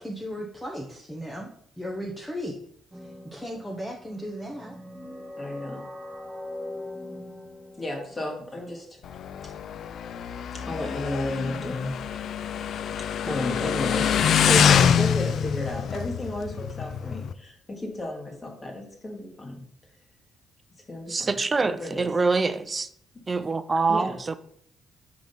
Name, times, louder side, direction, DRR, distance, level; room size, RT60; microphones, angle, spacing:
voice 1, 0.0-1.5 1.8-2.6 3.2-4.8, equal, 5° left, -1 dB, 0.9 m, -35 dB
sound 1, 2.9-8.3, left 1 dB, 10° right, 1.7 m, -41 dB
voice 2, 5.4-5.8 7.8-9.0 9.4-9.5 10.5-12.0 13.2-19.6 20.9-22.1 23.9-24.2, left 1 dB, 25° left, 1 dB, 1.8 m, -33 dB
Motorcycle, 9.0-17.3, left 8 dB, 65° left, 0.3 m, -25 dB
voice 3, 21.1-22.9 23.3-24.4, right 4 dB, 30° right, 12 dB, 0.5 m, -25 dB
4.9 x 3.8 x 5.3 m, 0.67 s
cardioid pair, 90°, 0 cm